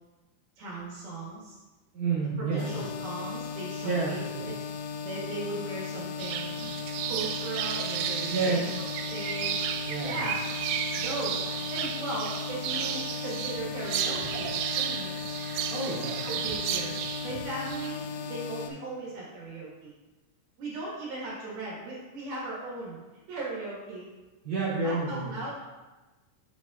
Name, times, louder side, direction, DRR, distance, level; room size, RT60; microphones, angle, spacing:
voice 1, 0.6-1.6 2.4-4.5 5.0-6.5 7.1-8.7 9.1-9.7 10.0-10.4 11.0-15.2 16.0-19.9 20.6-23.0 23.3-24.1 24.8-25.5, right 2 dB, 65° right, -6 dB, 2.8 m, -38 dB
voice 2, 1.9-2.7 3.8-4.1 4.3-4.4 8.3-8.6 9.8-10.2 15.7-16.2 24.4-25.3, right 4 dB, 45° right, -9 dB, 2.2 m, -29 dB
sound 1, 2.6-18.7, left 6 dB, 80° left, 2.8 m, -37 dB
sound 2, 6.2-17.9, right 9 dB, 85° right, 3.2 m, -33 dB
7.8 x 7.3 x 2.4 m, 1.2 s
omnidirectional pair, 5.9 m